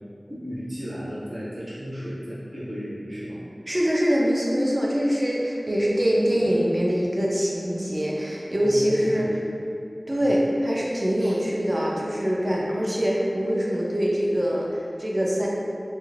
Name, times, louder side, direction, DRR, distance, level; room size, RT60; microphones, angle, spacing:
voice 1, 0.3-3.4 6.4-6.5 8.6-9.5 10.2-10.4 11.2-11.4, equal, 55° right, -10 dB, 0.9 m, -34 dB
voice 2, 3.7-9.3 10.1-15.5, equal, 35° right, -4 dB, 0.5 m, -24 dB
3.0 x 2.5 x 3.1 m, 2.4 s
wide cardioid pair, 50°, 0 cm